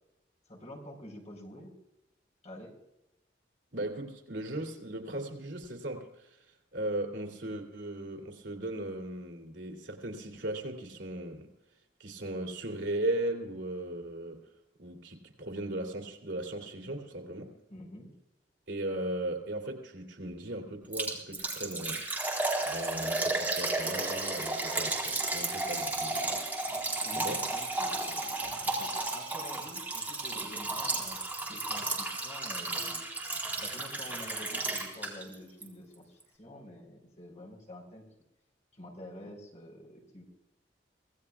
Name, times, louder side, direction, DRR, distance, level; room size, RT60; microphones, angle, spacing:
voice 1, 0.5-1.7 2.4-2.7 17.7-18.1 27.0-31.2 31.4-33.0 33.6-38.0 38.7-40.3, left 1 dB, 40° left, 4.5 m, -48 dB
voice 2, 3.7-11.5 12.0-14.5 14.8-17.5 18.7-22.1 22.7-26.4 27.2-27.5, right 1 dB, 80° right, 2.9 m, -37 dB
Liquid, 20.9-35.3 35.6-35.7 36.2-36.3, right 2 dB, 10° right, 4.0 m, -33 dB
25.5 x 17.5 x 2.4 m
head